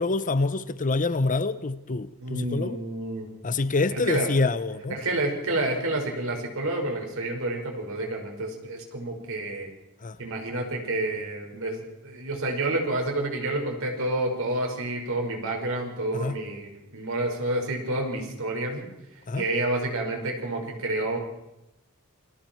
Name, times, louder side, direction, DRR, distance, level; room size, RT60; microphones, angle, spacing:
voice 1, 0.0-2.8 3.4-4.9 10.0-10.2 16.1-16.4 19.3-19.5, left 3 dB, 35° left, 0.7 m, -26 dB
voice 2, 2.2-3.3 3.9-4.5 4.9-9.7 10.2-18.9 19.4-21.2, right 2 dB, 65° right, 5.4 m, -29 dB
28.5 x 22.5 x 4.6 m
head